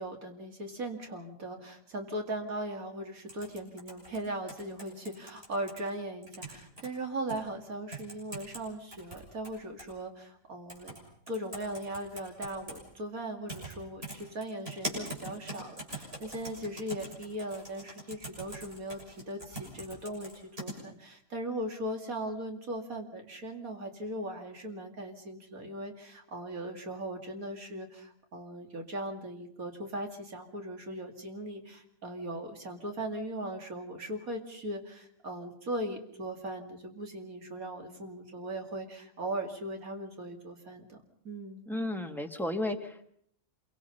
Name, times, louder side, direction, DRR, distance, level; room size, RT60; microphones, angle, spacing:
voice 1, 0.0-11.0 11.3-41.0 41.2-41.6, right 1 dB, 75° right, 3 dB, 3.0 m, -39 dB
sound 1, 3.3-5.8 6.2-6.9 7.3-7.4 7.9-8.6 8.9-9.9 10.7-11.0 11.3-12.8 13.5-13.7 14.0-20.7, right 1 dB, 40° right, 7.0 m, -42 dB
voice 2, 41.7-43.1, left 1 dB, ahead, 3 dB, 1.6 m, -33 dB
27.0 x 23.5 x 5.6 m, 0.66 s
omnidirectional pair, 1.5 m